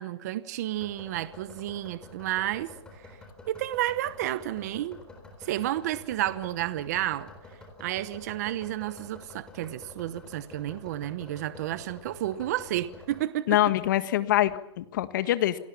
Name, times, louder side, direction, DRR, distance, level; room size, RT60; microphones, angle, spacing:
voice 1, 0.0-2.7 3.0-3.1 3.5-5.0 5.4-7.3 7.8-13.6, right 14 dB, 35° right, 1.0 m, -31 dB
sound 1, 0.7-13.2, left 2 dB, 5° left, 4.1 m, -49 dB
voice 2, 13.5-15.6, left 14 dB, 40° left, 1.6 m, -24 dB
29.0 x 19.0 x 7.2 m
hypercardioid pair, 175°, 15 cm